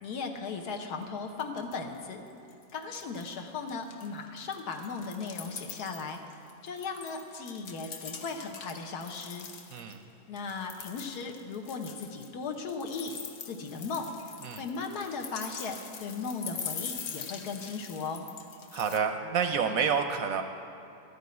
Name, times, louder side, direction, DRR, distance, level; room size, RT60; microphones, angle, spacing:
voice 1, 0.0-2.2 2.7-6.2 6.6-9.5 10.3-13.2 13.4-14.1 14.6-18.2, left 4 dB, 75° left, 3 dB, 1.4 m, -37 dB
sound 1, 1.0-1.1 1.4-2.0 2.3-3.4 3.7-10.0 10.4-19.0, left 6 dB, 55° left, 0.8 m, -43 dB
voice 2, 9.7-10.0 14.4-14.6 18.7-20.4, right 6 dB, 70° right, 6 dB, 0.9 m, -28 dB
13.0 x 5.4 x 9.2 m, 2.6 s
omnidirectional pair, 1.8 m